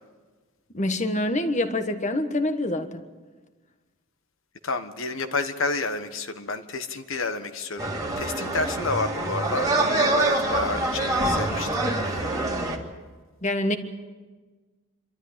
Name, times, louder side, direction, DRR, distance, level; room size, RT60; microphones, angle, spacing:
voice 1, 0.7-3.0 13.4-13.8, left 1 dB, 35° left, 8 dB, 1.4 m, -25 dB
voice 2, 4.6-12.3, left 3 dB, 60° left, 8 dB, 1.3 m, -30 dB
sound 1, 7.8-12.8, right 2 dB, 15° right, 2.1 m, -25 dB
27.0 x 13.0 x 10.0 m, 1.4 s
head